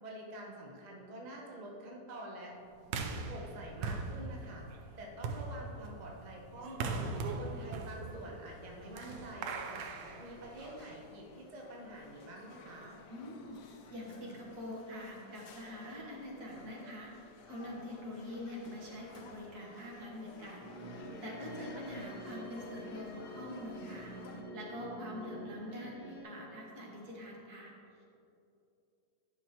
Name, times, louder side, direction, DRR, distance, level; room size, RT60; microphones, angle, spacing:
voice 1, 0.0-2.5 3.3-9.9 10.2-13.0 25.1-25.3, right 1 dB, 35° right, -2 dB, 0.7 m, -47 dB
sound 1, 2.8-11.0, right 4 dB, 85° right, 1.3 m, -40 dB
sound 2, 8.1-24.4, left 4 dB, 80° left, 1.3 m, -55 dB
voice 2, 13.1-13.6 13.9-28.1, left 1 dB, 65° right, -3 dB, 1.8 m, -45 dB
sound 3, 20.6-26.2, right 1 dB, 20° left, 0.8 m, -46 dB
9.9 x 5.8 x 2.9 m, 2.7 s
omnidirectional pair, 1.9 m